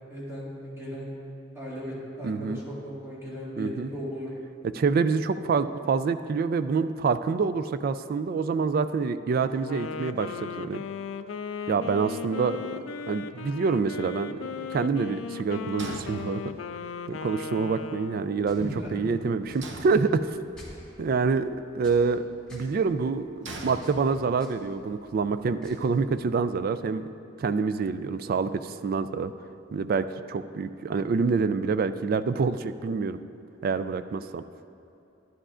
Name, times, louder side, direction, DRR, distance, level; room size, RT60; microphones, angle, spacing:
voice 1, 0.1-1.1 1.5-4.3 18.6-19.1, equal, 15° right, -8 dB, 2.3 m, -37 dB
voice 2, 2.2-2.6 3.6-3.9 4.8-10.8 11.7-12.6 13.1-16.4 17.1-20.4 21.0-21.5 21.7-22.2 22.5-27.1 27.4-29.3 29.7-33.2 33.6-34.4, right 5 dB, 50° right, 11 dB, 0.3 m, -26 dB
Wind instrument woodwind instrument, 9.5-18.5, left 6 dB, 85° left, 0.3 m, -37 dB
sound 1, 15.8-16.9 19.6-20.6 23.4-24.6, right 2 dB, 65° right, 0.8 m, -41 dB
sound 2, 18.4-26.5, left 1 dB, 5° left, 2.0 m, -52 dB
11.5 x 11.0 x 2.5 m, 2.6 s
head